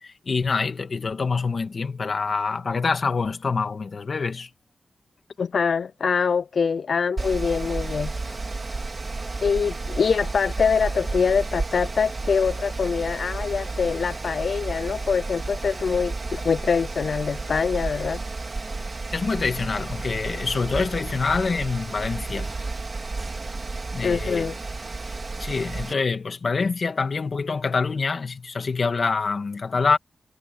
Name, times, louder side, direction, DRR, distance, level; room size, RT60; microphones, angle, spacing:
voice 1, 0.0-4.5 19.1-22.5 23.9-24.5 25.4-30.0, left 4 dB, 50° left, 2.2 m, -26 dB
voice 2, 5.4-8.4 9.4-18.2 24.0-24.6, left 6 dB, 70° left, 0.4 m, -24 dB
Mechanical fan, 7.2-25.9, right 3 dB, 35° right, 2.8 m, -32 dB
wide cardioid pair, 145°, 0 cm